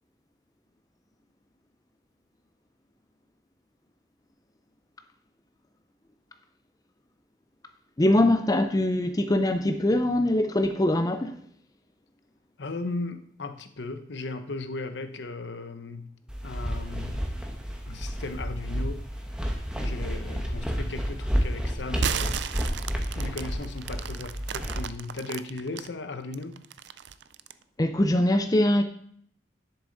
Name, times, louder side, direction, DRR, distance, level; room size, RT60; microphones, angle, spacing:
voice 1, 8.0-11.4 27.8-28.8, left 1 dB, 20° left, 0.5 m, -22 dB
voice 2, 12.6-16.1 16.4-17.3 17.9-19.0 19.8-22.4 23.1-26.6, left 3 dB, 70° left, 0.8 m, -36 dB
sound 1, 16.3-24.8, equal, 5° right, 1.1 m, -31 dB
sound 2, 22.0-25.9 26.3-27.6, right 8 dB, 65° right, 0.4 m, -34 dB
11.0 x 6.9 x 3.9 m
head